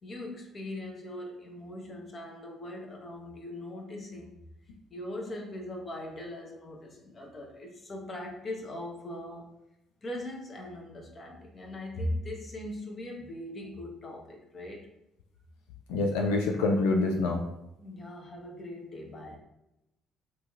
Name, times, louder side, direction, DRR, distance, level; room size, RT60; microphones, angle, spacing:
voice 1, 0.0-4.4 4.9-9.5 10.0-14.9 17.8-19.4, left 1 dB, 45° left, 0 dB, 0.8 m, -40 dB
voice 2, 15.9-17.4, left 2 dB, 80° left, 1 dB, 0.3 m, -26 dB
3.1 x 2.9 x 2.3 m, 0.85 s
hypercardioid pair, 50°, 0 cm